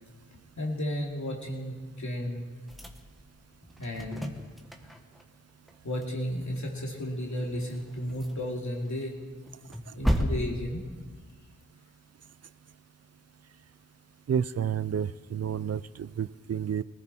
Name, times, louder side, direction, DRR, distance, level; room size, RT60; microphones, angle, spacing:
voice 1, 0.6-2.4 3.8-4.3 5.8-9.2 9.9-10.8, equal, 65° left, -1 dB, 2.9 m, -33 dB
sound 1, 2.7-5.2 5.5-5.8 6.0-6.1 6.4-6.5 7.2-8.6 9.0-11.4, equal, ahead, 1.5 m, -34 dB
voice 2, 14.3-16.8, right 8 dB, 55° right, 17 dB, 0.5 m, -30 dB
19.5 x 15.0 x 4.3 m, 1.4 s
cardioid pair, 45°, 31 cm